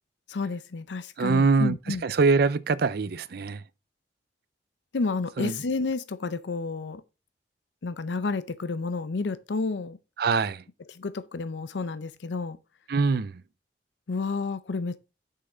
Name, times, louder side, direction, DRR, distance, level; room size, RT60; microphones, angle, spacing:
voice 1, 0.3-2.1 4.9-7.0 7.8-10.0 10.9-12.6 14.1-15.0, left 3 dB, 85° left, 0.6 m, -30 dB
voice 2, 1.2-1.8 2.0-3.6 5.4-5.5 10.2-10.6 12.9-13.3, right 4 dB, 60° right, 0.5 m, -23 dB
6.7 x 5.7 x 3.8 m
head